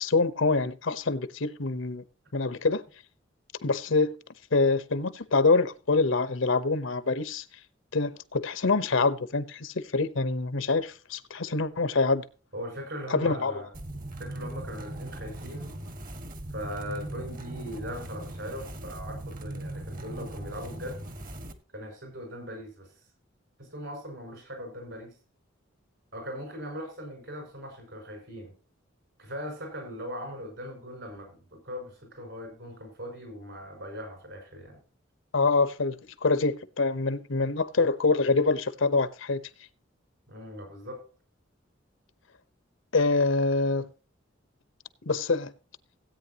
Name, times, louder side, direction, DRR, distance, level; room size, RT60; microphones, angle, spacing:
voice 1, 0.0-2.0 2.3-2.8 3.6-4.1 4.5-7.4 7.9-12.2 13.1-13.5 35.3-35.9 36.2-39.4 42.9-43.9 45.1-45.5, left 3 dB, 75° left, 0.9 m, -25 dB
voice 2, 12.5-13.7 14.2-15.8 16.5-21.0 21.7-22.9 23.6-25.1 26.1-28.5 29.2-34.8 40.3-41.0, equal, 65° right, 6.5 m, -40 dB
sound 1, 13.7-21.5, right 1 dB, 45° right, 1.6 m, -39 dB
17.0 x 9.0 x 2.9 m
head